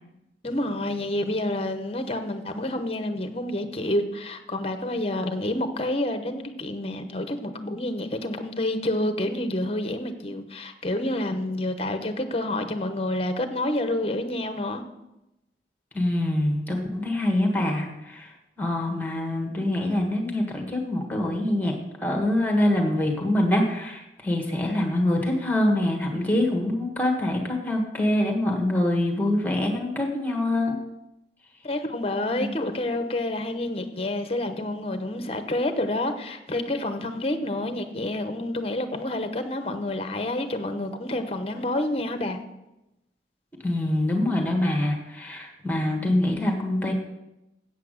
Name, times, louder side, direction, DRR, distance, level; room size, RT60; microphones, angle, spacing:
voice 1, 0.4-14.8 31.6-42.4, left 1 dB, 35° left, 8 dB, 0.9 m, -28 dB
voice 2, 15.9-18.3 18.6-21.7 22.0-30.8 32.3-32.5 43.6-46.9, left 1 dB, 10° left, 1 dB, 1.4 m, -25 dB
8.3 x 8.3 x 6.4 m, 0.94 s
head